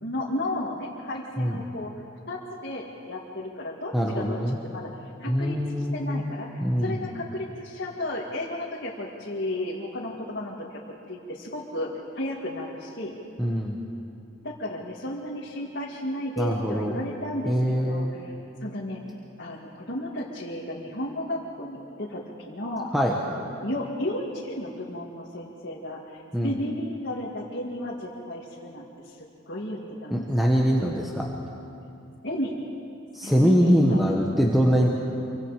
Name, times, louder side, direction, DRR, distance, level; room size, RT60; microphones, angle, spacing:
voice 1, 0.0-1.9 2.3-10.8 11.1-13.2 14.4-18.3 18.6-19.0 19.4-22.9 23.4-30.5 32.2-32.6 33.2-34.1, left 1 dB, 50° left, -4 dB, 2.1 m, -33 dB
voice 2, 3.9-4.6 5.3-6.9 13.4-13.8 16.4-16.9 17.5-18.1 22.9-23.1 26.3-26.5 30.1-31.3 33.1-34.9, equal, ahead, -2 dB, 1.3 m, -23 dB
27.5 x 24.5 x 5.0 m, 2.6 s
head